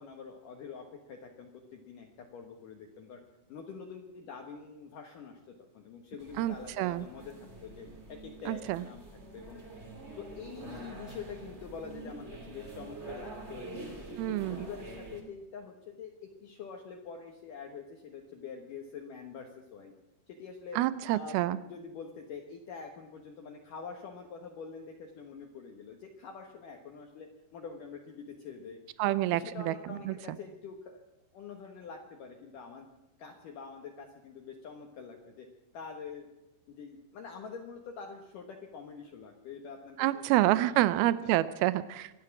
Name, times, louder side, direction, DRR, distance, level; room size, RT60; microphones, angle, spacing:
voice 1, 0.0-2.1 2.3-3.2 3.5-7.3 7.6-9.0 9.3-9.6 10.2-16.1 16.4-19.9 20.3-20.8 21.1-31.0 31.3-32.9 33.2-35.5 35.7-36.3 36.7-41.3, left 5 dB, 65° left, 2 dB, 2.4 m, -46 dB
sound 1, 6.2-15.2, right 2 dB, 25° right, 1.7 m, -46 dB
voice 2, 6.4-7.1 8.5-8.8 14.2-14.7 20.8-21.6 29.0-29.7 30.1-30.2 40.0-42.1, right 15 dB, 80° right, 15 dB, 2.3 m, -28 dB
25.5 x 9.4 x 6.0 m, 0.98 s
omnidirectional pair, 5.0 m